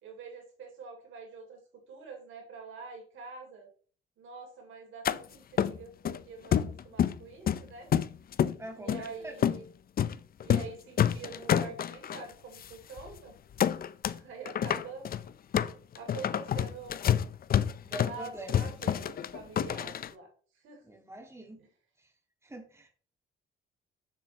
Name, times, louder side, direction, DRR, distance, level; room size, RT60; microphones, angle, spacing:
voice 1, 0.0-1.6 1.9-3.7 4.2-7.9 8.7-9.7 10.4-13.3 14.2-15.0 15.9-17.0 18.0-20.3 20.5-20.8 21.6-21.7, right 4 dB, 80° right, 1 dB, 3.4 m, -46 dB
sound 1, 5.0-5.2 5.6-6.2 6.5-7.2 7.5-8.5 8.9-9.1 9.4-9.6 10.0-10.1 10.4-10.7 11.0-12.2 12.6-12.7 13.0-13.2 13.6-14.2 14.5-20.1, left 9 dB, 50° left, 0.5 m, -28 dB
voice 2, 8.6-9.4 17.8-18.5 20.9-21.6 22.4-22.9, right 1 dB, 15° right, 2 dB, 2.0 m, -44 dB
7.6 x 7.3 x 3.2 m, 0.43 s
cardioid pair, 90°, 20 cm